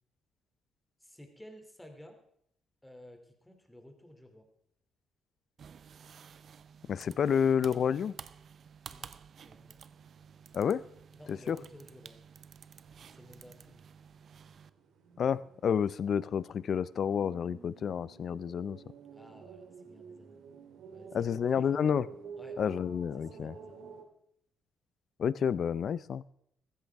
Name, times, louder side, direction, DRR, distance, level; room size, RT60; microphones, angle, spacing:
voice 1, 1.0-2.2 2.8-4.5 8.9-9.8 11.1-12.2 13.1-13.8 19.1-20.4 20.9-21.8 22.4-22.6 23.2-23.9, left 1 dB, 5° left, 4 dB, 2.7 m, -54 dB
sound 1, 5.6-14.7, right 7 dB, 55° right, 0.6 m, -52 dB
voice 2, 6.9-8.1 10.5-10.8 11.3-11.6 15.2-18.8 21.1-22.1 22.6-23.5 25.2-26.2, left 7 dB, 55° left, 19 dB, 0.4 m, -29 dB
sound 2, 9.9-24.0, right 6 dB, 85° right, 1.9 m, -52 dB
15.5 x 14.0 x 3.5 m, 0.71 s
cardioid pair, 90°, 0 cm